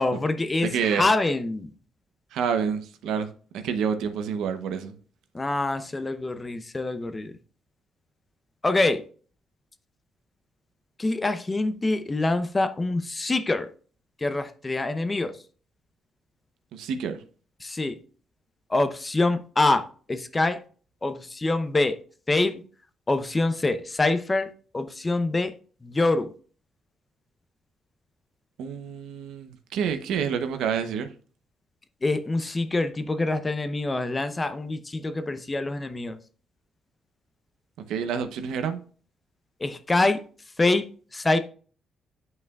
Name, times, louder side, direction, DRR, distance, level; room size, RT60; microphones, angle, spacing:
voice 1, 0.0-1.7 5.3-7.3 8.6-9.0 11.0-13.7 14.2-15.4 17.6-18.0 18.7-20.6 21.0-22.0 22.3-22.6 23.1-25.6 25.8-26.3 32.0-36.2 39.6-40.2 40.6-41.4, left 2 dB, 20° left, 0.7 m, -25 dB
voice 2, 0.6-1.0 2.3-4.9 16.7-17.2 28.6-31.1 37.9-38.8, right 7 dB, 85° right, 0.8 m, -28 dB
9.4 x 5.5 x 2.4 m
cardioid pair, 90°, 0 cm